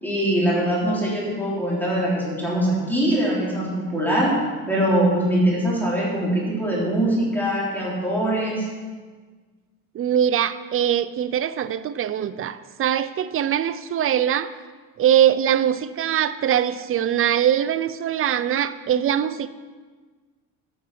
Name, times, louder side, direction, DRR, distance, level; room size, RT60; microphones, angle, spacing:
voice 1, 0.0-4.4 4.7-8.7, right 1 dB, 5° left, -6 dB, 3.4 m, -22 dB
voice 2, 9.9-14.5 15.0-19.5, right 10 dB, 35° right, 14 dB, 0.5 m, -22 dB
10.0 x 6.2 x 5.7 m, 1.4 s
cardioid pair, 105°, 42 cm